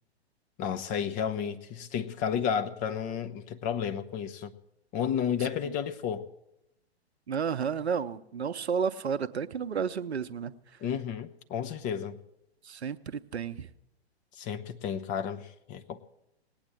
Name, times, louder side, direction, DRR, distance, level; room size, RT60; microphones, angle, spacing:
voice 1, 0.6-4.5 4.9-6.3 10.8-12.2 14.4-16.0, left 8 dB, 25° left, 0.7 m, -32 dB
voice 2, 7.3-10.5 12.6-13.0 13.3-13.7, right 6 dB, 80° right, 0.8 m, -31 dB
19.0 x 8.9 x 7.6 m
figure-of-eight pair, 110°, 32 cm